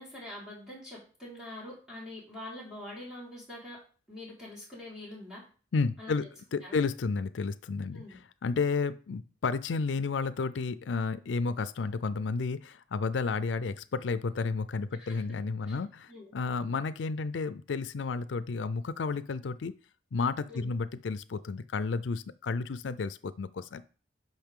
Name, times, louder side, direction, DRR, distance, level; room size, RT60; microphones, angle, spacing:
voice 1, 0.0-3.8 4.1-5.4 6.0-6.3 6.6-6.8 7.9-8.2 15.0-15.2 15.6-15.8 16.1-16.3 20.5-20.7, left 1 dB, 5° right, -7 dB, 4.5 m, -44 dB
voice 2, 5.7-6.3 6.5-19.7 20.1-23.8, left 4 dB, 85° left, 14 dB, 0.5 m, -32 dB
10.5 x 5.7 x 3.7 m, 0.39 s
head